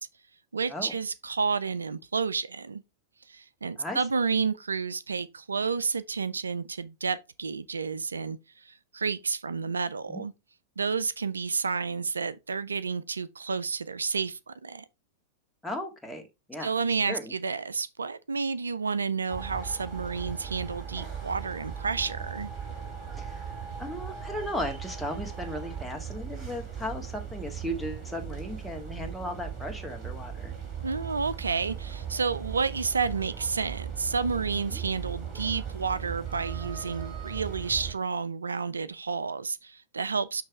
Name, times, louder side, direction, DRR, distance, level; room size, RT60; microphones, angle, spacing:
voice 1, 0.5-2.8 3.3-10.3 10.8-14.8 16.6-22.5 30.8-40.4, right 5 dB, 85° right, 0.4 m, -30 dB
voice 2, 15.6-16.2 16.5-16.7 17.1-17.3 23.2-23.5 23.8-30.5 34.7-34.8, left 1 dB, 5° left, 1.8 m, -36 dB
sound 1, 19.3-37.9, right 7 dB, 20° right, 3.4 m, -38 dB
6.6 x 3.2 x 4.6 m
hypercardioid pair, 100°, 0 cm